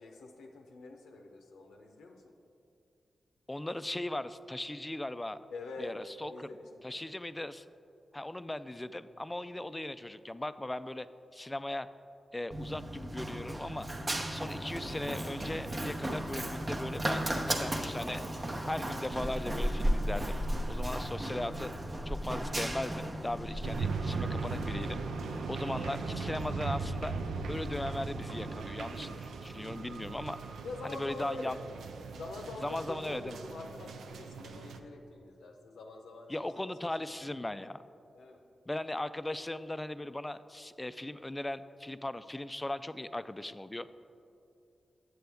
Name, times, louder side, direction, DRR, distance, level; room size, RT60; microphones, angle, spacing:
voice 1, 0.0-2.3 5.5-7.1 30.6-31.6 32.1-36.5 36.8-37.3 38.1-38.4, left 3 dB, 85° left, 2 dB, 0.6 m, -45 dB
voice 2, 3.5-5.4 5.8-6.5 6.8-7.6 8.1-11.1 11.3-11.9 12.3-13.9 14.3-18.2 18.6-20.3 20.7-21.7 22.1-25.0 25.5-27.1 27.5-30.4 30.8-31.6 32.6-33.4 36.3-37.8 38.7-44.0, left 1 dB, 20° left, 13 dB, 0.3 m, -38 dB
Run, 12.5-28.6, right 1 dB, 35° right, 0.8 m, -36 dB
sound 1, 23.6-34.8, right 4 dB, 85° right, 0.4 m, -39 dB
7.8 x 7.6 x 3.4 m, 2.7 s
supercardioid pair, 40°, 0 cm